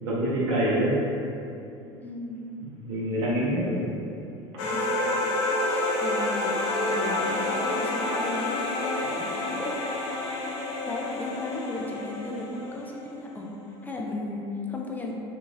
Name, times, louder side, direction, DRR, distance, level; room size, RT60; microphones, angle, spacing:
voice 1, 0.0-1.0 2.6-3.9, right 1 dB, 70° right, -7 dB, 0.7 m, -26 dB
voice 2, 2.0-2.5 4.6-5.2 5.6-9.8 10.3-10.5 10.8-13.5 13.8-15.1, left 2 dB, 10° left, -1 dB, 0.4 m, -36 dB
sound 1, 4.6-13.2, left 2 dB, 65° left, 0.5 m, -29 dB
2.5 x 2.4 x 3.1 m, 2.6 s
hypercardioid pair, 70°, 15 cm